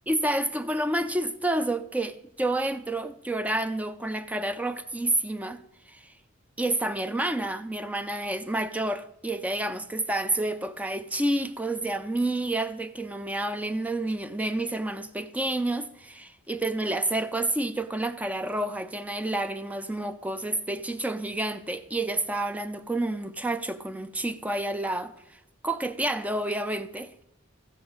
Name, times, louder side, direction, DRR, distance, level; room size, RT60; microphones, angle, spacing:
voice 1, 0.1-5.6 5.9-6.1 6.6-25.4 25.6-27.2, right 1 dB, 5° right, 0.4 m, -29 dB
13.5 x 5.2 x 8.0 m
head